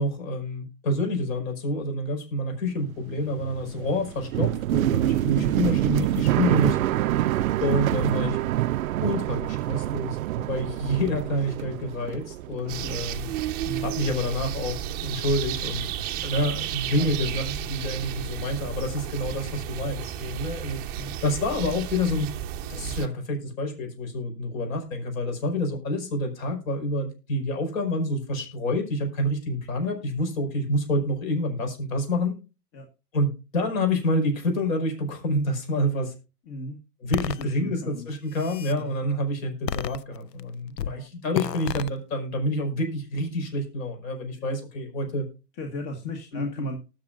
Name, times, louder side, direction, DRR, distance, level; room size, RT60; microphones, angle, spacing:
voice 1, 0.0-6.8 7.6-8.4 9.0-10.2 10.5-13.3 13.8-15.9 16.2-20.8 21.2-22.3 22.7-32.4 33.1-36.1 37.0-45.3 46.3-46.8, left 1 dB, 55° left, 4 dB, 5.4 m, -28 dB
sound 1, 2.9-13.0 13.3-14.1, right 14 dB, 60° right, 0.5 m, -26 dB
voice 2, 4.9-5.7 12.6-13.1 13.6-14.0 16.3-16.5 17.0-17.1 17.4-17.6 20.9-21.2 32.7-32.9 36.4-36.8 37.4-38.1 38.7-38.9 40.8-41.1 44.4-44.5 45.1-45.2 45.5-46.8, left 1 dB, 30° left, 4 dB, 1.5 m, -38 dB
sound 2, 12.7-23.1, right 10 dB, 20° right, 0.7 m, -33 dB
sound 3, 37.1-37.4 38.1-38.8 39.7-40.4 40.8-41.0 41.3-41.9, left 10 dB, 90° left, 0.7 m, -30 dB
19.0 x 6.7 x 2.5 m, 0.30 s
hypercardioid pair, 135°, 48 cm